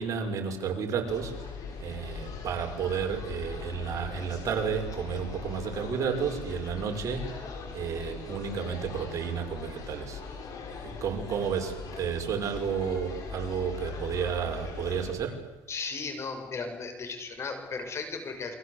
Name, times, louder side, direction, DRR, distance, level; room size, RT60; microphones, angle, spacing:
voice 1, 0.0-7.4 7.7-10.2 10.8-15.4, right 7 dB, 45° right, 3 dB, 6.1 m, -32 dB
sound 1, 1.1-15.1, left 5 dB, 50° left, 7.9 m, -40 dB
voice 2, 15.7-18.5, left 4 dB, 35° left, 7 dB, 6.4 m, -36 dB
29.5 x 23.5 x 8.3 m, 1.1 s
cardioid pair, 115°, 8 cm